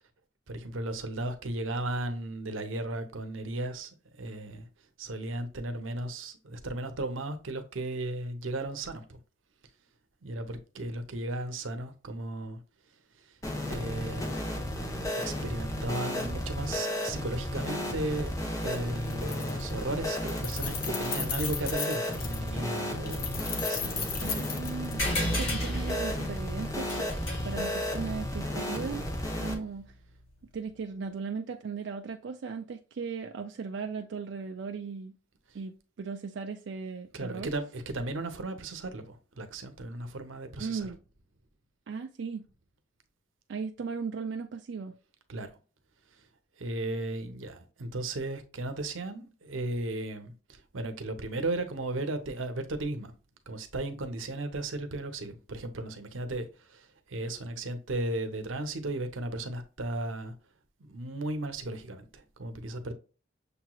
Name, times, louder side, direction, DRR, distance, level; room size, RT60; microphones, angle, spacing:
voice 1, 0.5-3.9 4.2-4.7 5.0-9.2 10.2-12.6 13.6-14.4 15.1-18.3 18.6-24.1 24.3-24.5 37.1-40.9 45.3-45.5 46.6-53.1 53.5-60.3 60.8-62.9, right 2 dB, 90° right, 0.8 m, -35 dB
sound 1, 13.4-29.5, left 1 dB, 15° left, 0.9 m, -33 dB
Keys jangling, 18.6-18.8 19.1-19.8 20.1-22.5 23.1-25.3, left 6 dB, 50° left, 0.8 m, -36 dB
voice 2, 24.2-27.1 27.4-29.1 29.4-29.9 30.5-35.1 35.5-37.5 40.6-41.0 41.9-42.5 43.5-44.9, right 5 dB, 65° right, 0.4 m, -37 dB
sound 2, 25.0-29.9, equal, 75° left, 2.2 m, -35 dB
6.7 x 3.0 x 2.3 m
head